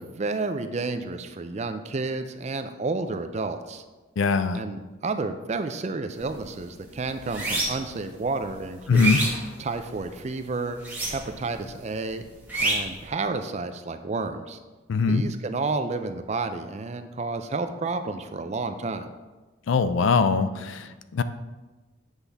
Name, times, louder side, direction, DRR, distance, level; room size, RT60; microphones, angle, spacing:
voice 1, 0.0-3.8 4.5-9.2 9.6-10.8 11.1-12.2 12.6-14.6 15.1-19.1, right 3 dB, 35° right, 8 dB, 0.4 m, -31 dB
voice 2, 4.2-4.6 8.9-9.2 14.9-15.2 19.7-21.2, left 4 dB, 65° left, 12 dB, 0.4 m, -22 dB
sound 1, 6.2-6.5 6.8-8.0 8.4-10.1 10.8-11.5 11.8-13.0, right 2 dB, 10° right, 1.4 m, -28 dB
8.1 x 5.5 x 3.4 m, 1.2 s
head